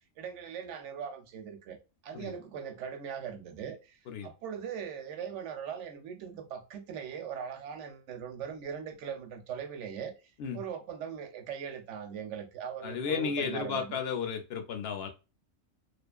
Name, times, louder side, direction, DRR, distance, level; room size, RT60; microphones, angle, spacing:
voice 1, 0.2-1.8 2.0-10.1 10.5-14.0, right 7 dB, 70° right, 0.8 m, -40 dB
voice 2, 12.8-15.1, left 6 dB, 65° left, 0.7 m, -33 dB
2.7 x 2.4 x 2.2 m
omnidirectional pair, 1.3 m